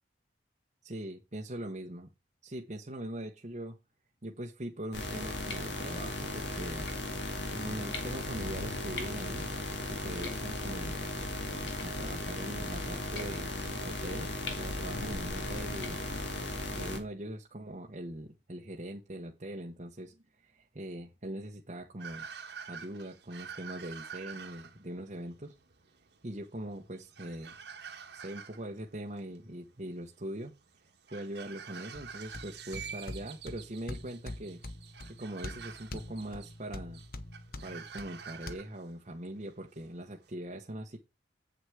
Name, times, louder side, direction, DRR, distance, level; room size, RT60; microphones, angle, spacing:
voice 1, 0.8-2.1 2.4-3.8 4.2-6.9 7.5-9.5 9.9-11.0 11.4-13.5 13.8-16.0 16.7-22.3 22.7-25.5 26.2-27.5 28.1-30.5 31.1-34.6 35.1-37.0 37.6-41.0, right 1 dB, 40° right, 1.0 m, -41 dB
sound 1, 4.9-17.0, left 2 dB, 80° left, 2.3 m, -36 dB
sound 2, 22.0-40.3, right 6 dB, 70° right, 1.5 m, -48 dB
sound 3, 31.9-38.5, left 1 dB, 50° left, 0.9 m, -45 dB
8.2 x 6.3 x 4.7 m
head